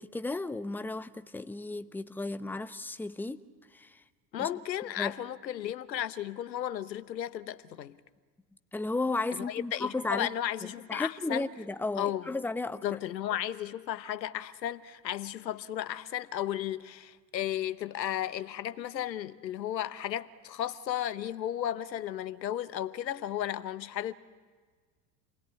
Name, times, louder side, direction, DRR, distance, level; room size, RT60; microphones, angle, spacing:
voice 1, 0.0-3.4 3.7-4.0 4.4-4.5 5.0-5.2 8.7-10.3 10.9-13.0, left 2 dB, 5° left, 0.9 m, -34 dB
voice 2, 4.3-8.0 9.5-11.5 12.0-12.2 12.8-24.1, left 11 dB, 85° left, 1.1 m, -34 dB
29.0 x 20.5 x 9.7 m
hypercardioid pair, 80°, 50 cm